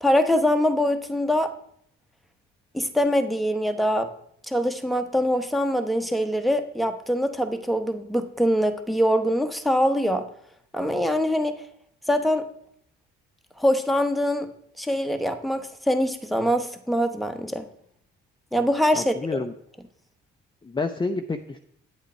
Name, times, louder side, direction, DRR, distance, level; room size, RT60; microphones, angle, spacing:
voice 1, 0.0-1.5 2.7-4.1 4.5-10.3 10.7-11.5 12.1-12.4 13.6-14.5 14.8-17.7 18.5-19.4, equal, ahead, 7 dB, 1.0 m, -23 dB
voice 2, 18.9-19.5 20.6-21.6, left 3 dB, 15° left, 6 dB, 0.6 m, -29 dB
9.6 x 8.2 x 4.4 m, 0.69 s
cardioid pair, 90°, 30 cm